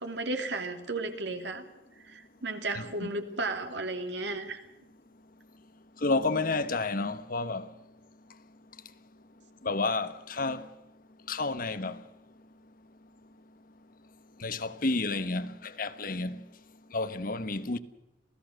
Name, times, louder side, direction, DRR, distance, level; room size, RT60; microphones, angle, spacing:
voice 1, 0.0-1.6 2.4-4.6, right 2 dB, 75° right, 2.8 m, -33 dB
voice 2, 2.7-3.1 6.0-7.7 9.6-10.7 11.3-12.0 14.4-16.4 16.9-17.8, left 3 dB, 50° left, 1.2 m, -30 dB
27.5 x 17.0 x 6.6 m
head